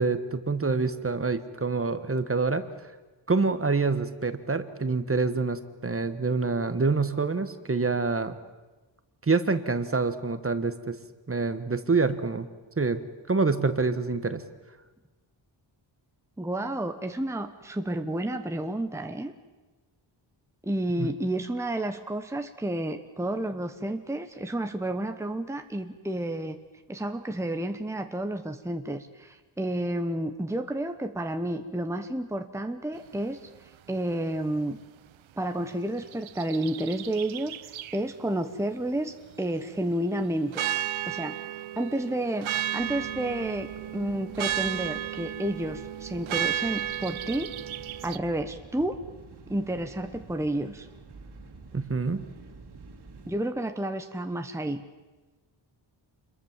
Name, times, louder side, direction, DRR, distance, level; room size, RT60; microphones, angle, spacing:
voice 1, 0.0-2.6 3.3-8.3 9.3-11.0 11.3-12.5 12.8-13.0 13.3-14.4 21.0-21.1 51.7-52.2, right 4 dB, 30° right, 10 dB, 1.4 m, -26 dB
voice 2, 16.4-19.3 20.6-26.6 26.9-34.8 35.4-40.6 41.1-41.4 41.8-47.5 48.0-49.0 49.5-50.9 53.3-54.8, right 1 dB, 5° right, 6 dB, 1.1 m, -31 dB
sound 1, 36.0-38.0 40.5-48.2, right 11 dB, 85° right, 0.7 m, -33 dB
sound 2, 42.8-53.3, right 3 dB, 55° right, 2.8 m, -49 dB
27.5 x 22.0 x 7.4 m, 1.2 s
wide cardioid pair, 125°, 46 cm